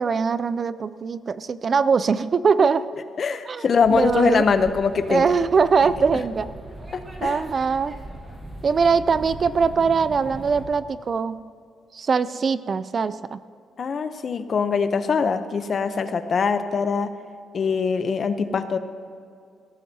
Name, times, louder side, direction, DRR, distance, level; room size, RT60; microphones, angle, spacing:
voice 1, 0.0-2.8 3.5-3.6 3.9-4.5 5.1-6.5 7.2-7.9 8.6-11.4 11.9-13.4, right 5 dB, 35° right, 15 dB, 0.3 m, -21 dB
voice 2, 3.2-5.3 6.9-7.4 13.8-17.1 17.5-18.8, left 5 dB, 40° left, 10 dB, 0.7 m, -23 dB
sound 1, 3.8-10.7, right 1 dB, 20° right, 1.4 m, -39 dB
17.5 x 14.0 x 2.8 m, 2.4 s
cardioid pair, 135°, 0 cm